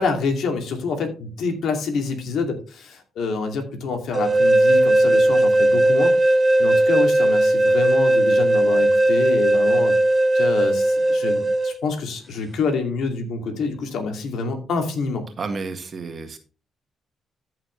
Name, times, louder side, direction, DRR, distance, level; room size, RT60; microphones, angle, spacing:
voice 1, 0.0-6.2 6.6-10.0 10.3-15.3, left 4 dB, 75° left, 4 dB, 2.5 m, -27 dB
sound 1, 4.1-11.7, right 1 dB, 30° right, 1.4 m, -17 dB
voice 2, 15.4-16.4, right 4 dB, 45° right, 6 dB, 1.7 m, -31 dB
14.0 x 5.9 x 3.2 m, 0.34 s
cardioid pair, 90°, 0 cm